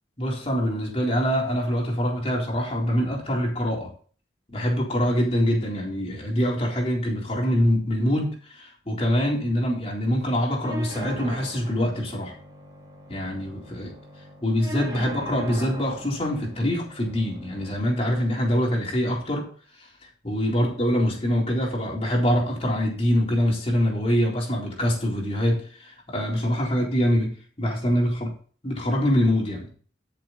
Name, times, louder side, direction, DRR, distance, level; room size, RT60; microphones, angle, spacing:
voice 1, 0.2-3.9 4.5-12.3 13.1-13.9 14.4-19.5 20.2-28.3 28.6-29.7, equal, 30° left, -2 dB, 3.9 m, -24 dB
sound 1, 10.6-18.6, right 1 dB, 20° right, 2.5 m, -40 dB
13.5 x 6.9 x 4.2 m, 0.41 s
head